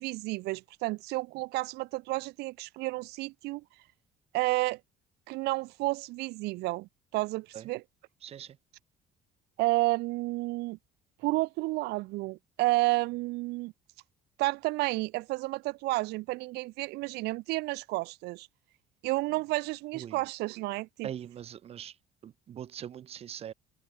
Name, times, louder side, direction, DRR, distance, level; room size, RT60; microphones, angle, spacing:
voice 1, 0.0-3.6 4.3-4.8 5.3-7.8 9.6-10.8 11.2-13.7 14.4-18.5 19.0-21.1, right 21 dB, 85° right, 1.3 m, -31 dB
voice 2, 8.2-8.6 19.9-20.2 21.0-22.0 22.2-23.5, right 9 dB, 40° right, 2.2 m, -42 dB
cardioid pair, 165°, 17 cm